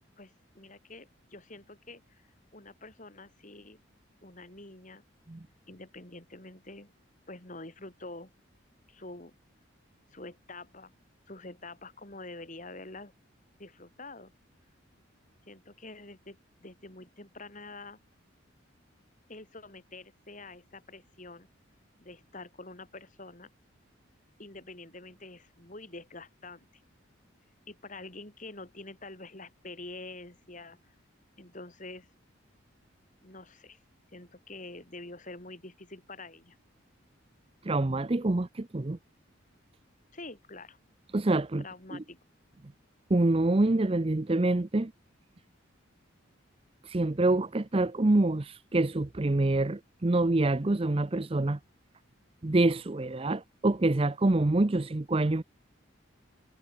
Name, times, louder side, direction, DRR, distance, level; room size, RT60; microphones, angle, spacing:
voice 1, 0.2-2.2 2.5-3.8 4.2-5.0 5.7-6.9 7.3-8.3 8.9-9.3 10.1-10.9 11.3-13.1 13.6-14.3 15.5-18.0 19.3-21.5 22.0-23.5 24.4-26.8 27.7-30.9 31.4-32.1 33.2-33.8 34.1-36.6 40.1-40.8 41.6-42.2, left 2 dB, 40° left, 3.5 m, -46 dB
voice 2, 37.6-39.0 41.1-41.6 41.9-42.0 43.1-44.9 46.8-51.6 52.4-55.4, right 2 dB, 30° right, 0.6 m, -26 dB
head